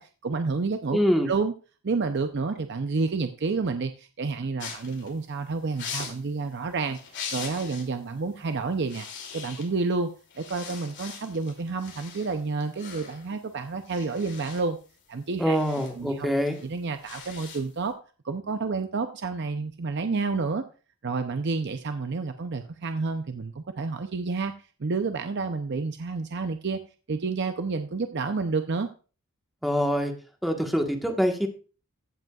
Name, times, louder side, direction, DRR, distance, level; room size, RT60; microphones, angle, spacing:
voice 1, 0.0-1.0 1.3-1.5 1.8-7.0 7.3-9.1 9.3-10.1 10.4-14.8 15.1-15.6 16.0-16.3 16.6-17.9 18.2-20.6 21.0-24.5 24.8-26.8 27.1-28.9, right 4 dB, 55° right, 7 dB, 0.6 m, -29 dB
voice 2, 0.9-1.3 15.4-16.6 29.6-30.1 30.4-31.5, equal, ahead, 3 dB, 1.3 m, -24 dB
sound 1, 4.6-7.9 8.3-8.5 8.8-9.9 10.3-17.9, left 6 dB, 55° left, 2.7 m, -41 dB
15.0 x 8.0 x 2.4 m, 0.36 s
head